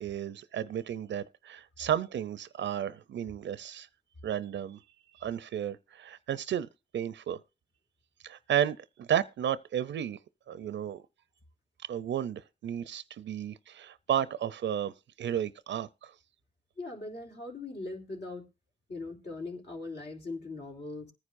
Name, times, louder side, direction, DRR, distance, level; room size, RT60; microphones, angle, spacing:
voice 1, 0.0-3.9 4.2-4.8 5.1-6.7 6.9-7.4 8.2-10.2 10.5-11.0 11.9-14.9 15.2-16.1, right 10 dB, 85° right, 0.5 m, -33 dB
voice 2, 16.8-18.4 18.9-21.1, left 3 dB, 70° left, 3.2 m, -40 dB
20.5 x 9.8 x 2.5 m
cardioid pair, 75°, 19 cm